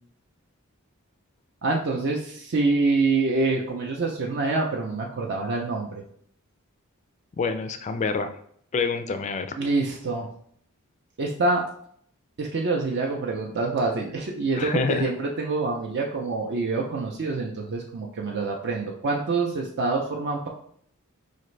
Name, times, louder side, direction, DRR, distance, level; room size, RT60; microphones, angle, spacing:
voice 1, 1.6-6.0 9.6-10.3 11.2-11.6 12.4-20.5, right 3 dB, 50° right, 0 dB, 0.5 m, -26 dB
voice 2, 7.4-8.3 8.7-9.6 14.6-15.1, left 4 dB, 30° left, 9 dB, 0.3 m, -27 dB
4.9 x 2.5 x 3.1 m, 0.64 s
head